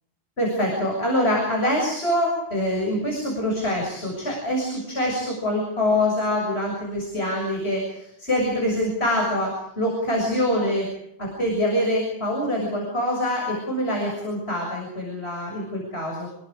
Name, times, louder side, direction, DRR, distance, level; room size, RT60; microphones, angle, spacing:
voice 1, 0.4-10.9 11.2-16.3, left 1 dB, 65° left, -1 dB, 7.1 m, -25 dB
28.0 x 23.0 x 5.0 m, 0.77 s
omnidirectional pair, 1.2 m